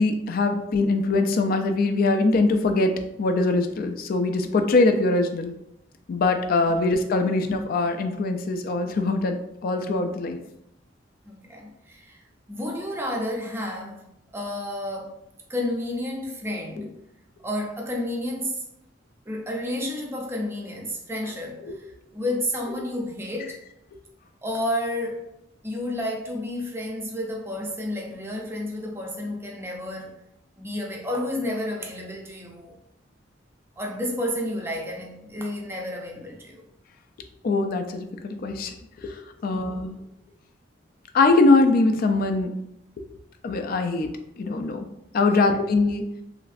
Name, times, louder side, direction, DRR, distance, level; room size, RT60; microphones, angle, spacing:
voice 1, 0.0-2.9 3.2-5.5 6.1-9.4 9.6-10.4 21.6-21.7 37.4-38.7 39.0-39.1 39.4-40.0 41.1-42.5 43.4-44.1 44.4-44.9 45.1-46.0, left 3 dB, 50° left, 0.3 m, -22 dB
voice 2, 11.3-12.2 12.5-14.0 14.3-15.2 15.5-17.0 17.4-18.6 19.3-21.9 22.1-23.6 24.4-25.2 25.6-30.1 30.6-32.8 33.8-36.6 39.5-39.6 45.3-45.4, left 1 dB, 15° right, 0.4 m, -31 dB
3.0 x 2.5 x 2.4 m
head